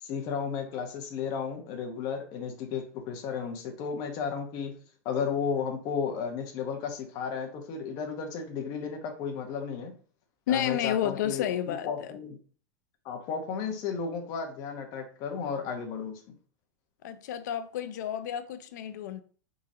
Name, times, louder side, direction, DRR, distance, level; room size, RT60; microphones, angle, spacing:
voice 1, 0.0-4.7 5.0-9.9 10.5-12.4 13.0-16.1, left 6 dB, 40° left, 1.1 m, -33 dB
voice 2, 10.5-12.1 17.0-19.2, left 10 dB, 80° left, 0.5 m, -31 dB
4.6 x 3.9 x 2.8 m
supercardioid pair, 155°, 9 cm